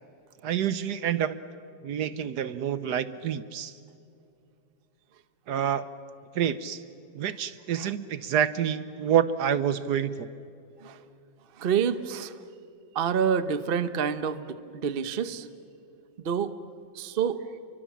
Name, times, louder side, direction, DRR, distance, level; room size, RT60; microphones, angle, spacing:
voice 1, 0.4-1.4 1.8-3.7 5.5-5.9 6.3-6.8 7.1-10.3, right 9 dB, 65° right, 14 dB, 1.2 m, -27 dB
voice 2, 11.6-12.3 12.9-15.5 16.2-16.6 16.9-17.5, right 7 dB, 45° right, 12 dB, 0.8 m, -28 dB
29.0 x 24.0 x 7.3 m, 2.6 s
omnidirectional pair, 2.1 m